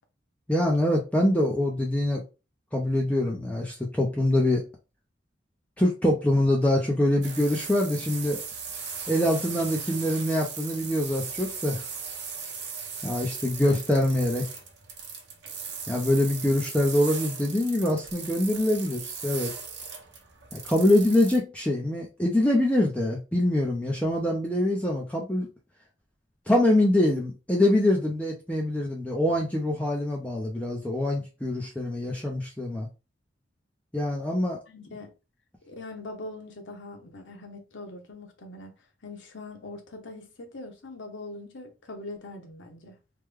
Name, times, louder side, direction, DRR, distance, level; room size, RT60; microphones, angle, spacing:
voice 1, 0.5-2.2 2.7-4.6 5.8-8.4 9.1-11.8 13.0-14.5 15.9-19.5 20.5-25.5 26.5-32.9 33.9-34.6, left 1 dB, 10° left, 0.5 m, -24 dB
sound 1, 7.2-21.4, right 6 dB, 65° right, 0.9 m, -38 dB
voice 2, 34.7-35.1 35.7-38.7 39.0-43.0, left 2 dB, 90° left, 0.9 m, -42 dB
3.2 x 2.2 x 3.5 m
head